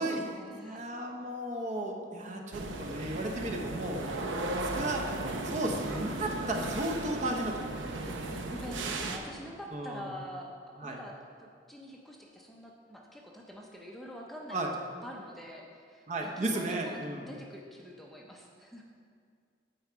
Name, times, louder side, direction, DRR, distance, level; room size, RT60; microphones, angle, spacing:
voice 1, 0.0-0.8 2.1-2.7 8.2-10.5 10.8-18.8, equal, ahead, -1 dB, 0.5 m, -46 dB
voice 2, 0.6-4.0 4.6-5.1 5.4-8.1 9.7-10.1 10.8-11.0 14.5-14.7 16.1-17.2, right 1 dB, 40° right, 1 dB, 0.8 m, -34 dB
sound 1, 2.5-9.2, right 2 dB, 75° right, 0.7 m, -36 dB
8.7 x 4.6 x 5.0 m, 2.3 s
head